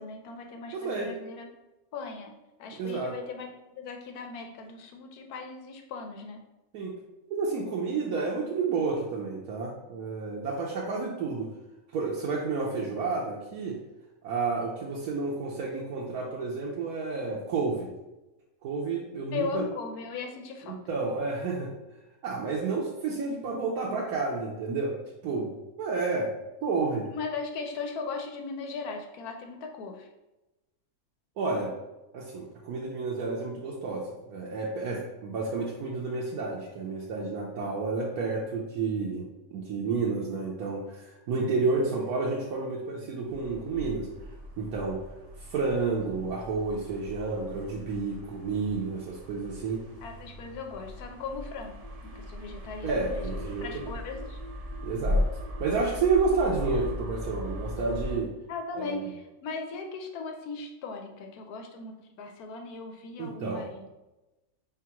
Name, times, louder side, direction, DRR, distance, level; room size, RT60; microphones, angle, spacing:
voice 1, 0.0-1.5 1.9-2.3 2.6-3.5 3.7-6.4 19.3-20.8 27.1-30.1 50.0-53.3 53.6-54.4 58.5-63.8, left 4 dB, 90° left, 4 dB, 1.2 m, -38 dB
voice 2, 0.7-1.1 2.8-3.1 6.7-7.0 7.3-11.5 11.9-13.8 14.2-17.9 18.6-19.6 20.6-21.7 22.2-24.9 25.2-26.3 26.6-27.1 31.4-31.8 32.1-45.1 45.4-49.9 52.8-53.9 54.8-55.3 55.6-58.3 58.8-59.0 63.2-63.6, right 4 dB, 80° right, -4 dB, 1.2 m, -30 dB
sound 1, 43.3-58.2, left 1 dB, 55° right, 0.4 m, -37 dB
5.1 x 3.6 x 2.9 m, 1.0 s
omnidirectional pair, 1.6 m